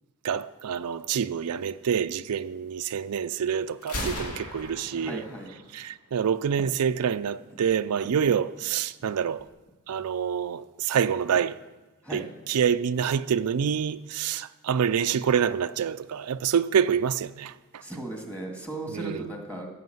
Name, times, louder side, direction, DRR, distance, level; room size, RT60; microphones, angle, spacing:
voice 1, 0.2-5.2 5.7-9.4 9.9-11.5 12.1-12.2 12.5-17.5 18.9-19.2, right 7 dB, 85° right, 0.4 m, -26 dB
Gunshot gunfire, 3.8-5.8, left 1 dB, 75° left, 2.4 m, -36 dB
voice 2, 4.9-5.5 7.5-7.6 12.0-12.3 17.8-19.7, right 1 dB, 5° left, 1.8 m, -36 dB
14.5 x 5.8 x 7.8 m
head